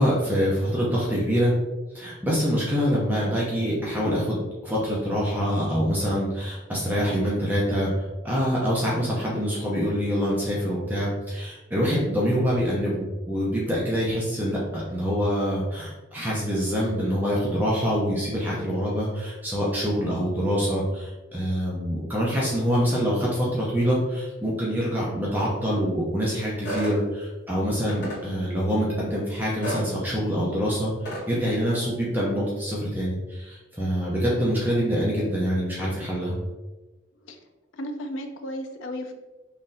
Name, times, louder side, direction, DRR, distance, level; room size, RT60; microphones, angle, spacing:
voice 1, 0.0-1.5 1.9-7.9 8.2-30.9 31.3-36.4, equal, 10° right, -6 dB, 0.6 m, -25 dB
sound 1, 26.6-27.0 27.9-28.2 29.6-29.9 31.0-31.2, equal, 55° left, 1.5 m, -30 dB
voice 2, 37.7-39.1, equal, 85° left, 6 dB, 0.4 m, -34 dB
3.9 x 3.1 x 2.6 m, 1.2 s
head